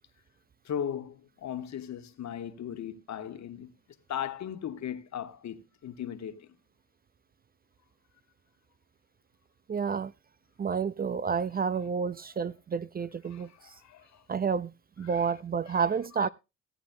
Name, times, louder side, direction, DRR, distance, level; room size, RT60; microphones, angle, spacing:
voice 1, 0.6-3.7 4.1-6.5 13.3-14.2 15.0-15.3 15.7-15.8 16.1-16.3, left 9 dB, 60° left, 1.3 m, -38 dB
voice 2, 9.7-10.1 10.6-13.7 14.3-14.7 15.0-16.3, right 6 dB, 30° right, 0.4 m, -30 dB
16.5 x 8.6 x 2.6 m
supercardioid pair, 65°, 31 cm